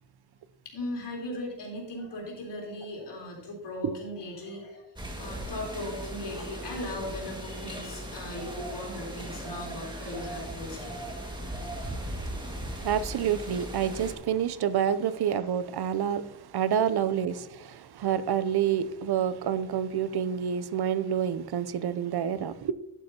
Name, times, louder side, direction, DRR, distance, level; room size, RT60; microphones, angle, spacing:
voice 1, 0.7-10.9 17.2-17.3, left 1 dB, 75° left, 3.8 m, -38 dB
sound 1, 5.0-14.1, right 1 dB, 10° right, 1.8 m, -38 dB
voice 2, 12.8-16.2 16.5-22.7, right 9 dB, 65° right, 0.6 m, -28 dB
11.0 x 9.5 x 2.8 m
wide cardioid pair, 145°, 42 cm